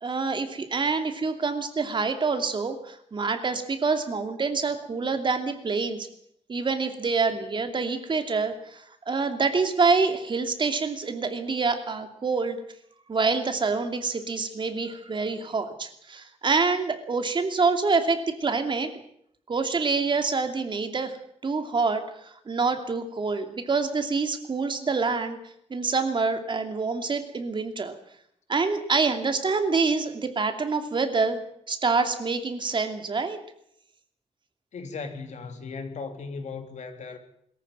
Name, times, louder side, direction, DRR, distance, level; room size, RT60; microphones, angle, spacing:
voice 1, 0.0-6.1 6.5-12.6 13.1-18.9 19.5-21.2 21.4-25.4 25.7-27.9 28.5-31.4 31.7-33.4, right 4 dB, 40° right, 7 dB, 2.7 m, -26 dB
voice 2, 34.7-37.2, left 4 dB, 75° left, 6 dB, 3.4 m, -37 dB
22.5 x 14.0 x 9.2 m, 0.70 s
wide cardioid pair, 155°, 12 cm